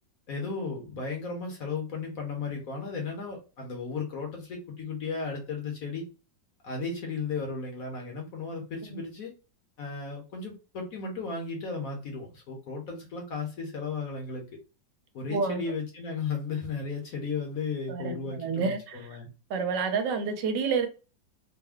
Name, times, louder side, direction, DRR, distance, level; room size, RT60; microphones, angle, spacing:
voice 1, 0.3-6.0 6.6-9.3 9.8-14.5 15.1-19.3, left 4 dB, 55° left, 1.2 m, -35 dB
voice 2, 15.3-15.6 17.9-19.0 19.5-20.9, right 5 dB, 75° right, 1.3 m, -29 dB
3.5 x 2.2 x 3.4 m
omnidirectional pair, 2.0 m